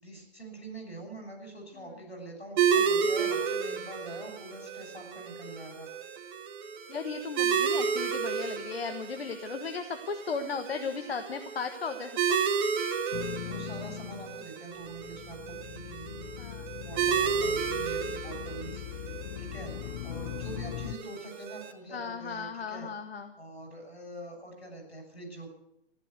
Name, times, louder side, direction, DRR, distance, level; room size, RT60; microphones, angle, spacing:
voice 1, 0.0-5.9 13.4-16.3 16.8-19.7 20.0-22.9 23.4-25.5, right 2 dB, 90° left, 3 dB, 6.8 m, -44 dB
sound 1, 2.6-21.7, right 6 dB, 50° right, 2.3 m, -32 dB
voice 2, 6.9-12.1 16.4-16.7 21.9-23.3, left 5 dB, 70° left, 7 dB, 1.3 m, -36 dB
sound 2, 13.1-14.5 14.8-20.9, left 15 dB, 40° left, 0.6 m, -40 dB
15.0 x 11.0 x 8.1 m, 0.78 s
figure-of-eight pair, 115°, 31 cm